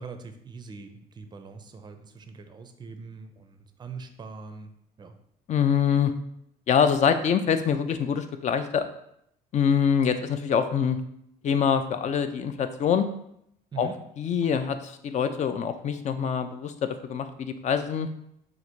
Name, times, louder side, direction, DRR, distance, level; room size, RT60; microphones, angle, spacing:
voice 1, 0.0-4.7 5.0-5.1 13.7-14.0, right 4 dB, 25° right, 8 dB, 0.5 m, -42 dB
voice 2, 5.5-6.1 6.7-8.9 9.5-11.0 11.4-13.1 13.8-13.9 14.2-18.1, left 7 dB, 45° left, 9 dB, 0.4 m, -25 dB
3.9 x 2.5 x 4.5 m, 0.74 s
cardioid pair, 110°, 17 cm